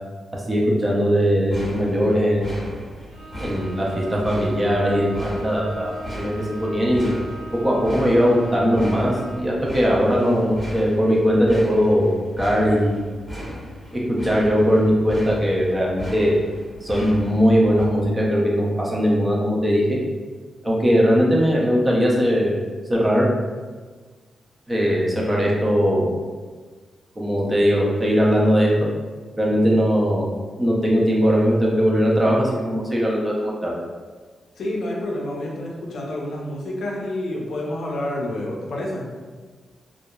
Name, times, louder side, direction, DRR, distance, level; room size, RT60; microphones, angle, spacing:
voice 1, 0.5-2.6 3.4-5.9 6.2-6.3 6.6-7.1 7.6-12.9 13.9-16.3 16.8-20.0 20.6-22.6 22.9-23.3 24.7-26.1 27.2-28.7 29.4-30.3 30.6-33.8, equal, 15° right, -3 dB, 0.4 m, -19 dB
sound 1, 1.4-17.8, equal, 5° left, 0.9 m, -36 dB
Bowed string instrument, 3.1-9.6, right 1 dB, 90° right, 0.7 m, -39 dB
voice 2, 34.6-39.1, left 1 dB, 70° left, -2 dB, 0.5 m, -28 dB
2.8 x 2.1 x 2.2 m, 1.4 s
wide cardioid pair, 140°, 0 cm